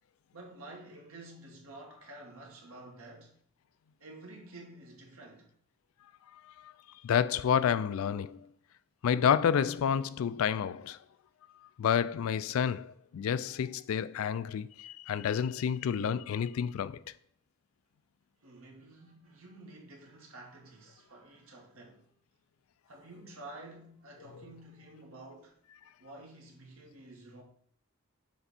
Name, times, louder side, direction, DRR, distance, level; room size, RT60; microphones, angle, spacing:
voice 1, 0.3-3.3 4.0-5.5 18.4-22.1 22.9-25.5 26.0-27.4, right 2 dB, 85° right, 1.6 m, -50 dB
voice 2, 7.0-8.5 9.0-11.0 11.8-17.0, left 8 dB, 80° left, 0.3 m, -29 dB
7.0 x 3.4 x 4.1 m
head